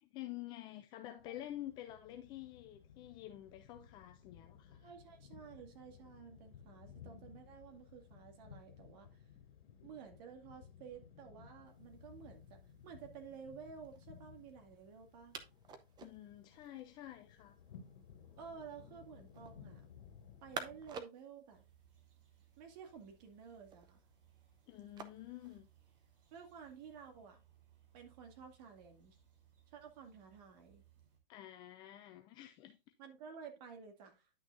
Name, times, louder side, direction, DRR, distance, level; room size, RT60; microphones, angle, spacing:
voice 1, 0.0-4.9 16.0-17.6 24.7-25.7 31.3-32.8, left 13 dB, 15° left, 0.3 m, -49 dB
sound 1, 1.2-20.9, left 7 dB, 55° left, 2.5 m, -59 dB
voice 2, 4.8-9.2 9.8-15.4 18.4-19.8 20.4-21.6 22.6-24.0 26.3-27.4 27.9-29.2 29.7-30.8 33.0-34.3, right 7 dB, 45° right, 2.3 m, -53 dB
sound 2, 11.6-27.1, right 5 dB, 15° right, 0.6 m, -55 dB
sound 3, 21.5-31.2, right 9 dB, 60° right, 3.4 m, -68 dB
10.5 x 6.2 x 2.5 m
hypercardioid pair, 130°, 30 cm